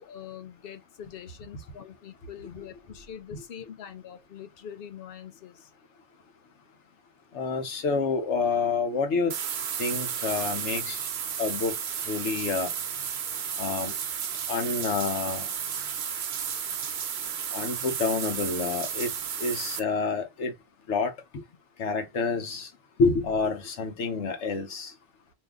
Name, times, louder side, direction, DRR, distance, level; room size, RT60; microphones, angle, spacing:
voice 1, 0.0-5.7, left 9 dB, 60° left, 0.8 m, -44 dB
voice 2, 7.3-9.3 9.8-11.1 11.4-11.8 12.1-12.7 13.6-13.9 14.5-15.5 17.5-19.1 19.4-20.5 20.9-21.1 21.8-22.7 23.0-24.9, left 4 dB, 80° left, 1.1 m, -28 dB
sound 1, 9.3-19.8, right 8 dB, 55° right, 0.6 m, -33 dB
2.8 x 2.5 x 3.6 m
omnidirectional pair, 1.2 m